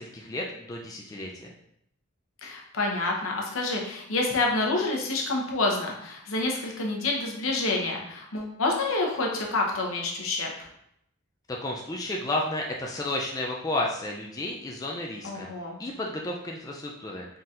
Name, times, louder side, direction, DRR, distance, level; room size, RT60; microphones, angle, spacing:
voice 1, 0.0-1.5 11.5-15.5 15.8-17.3, left 1 dB, 15° left, -1 dB, 0.4 m, -32 dB
voice 2, 2.4-10.7 15.2-15.8, left 2 dB, 75° left, 0 dB, 0.9 m, -28 dB
4.2 x 3.8 x 2.5 m, 0.74 s
head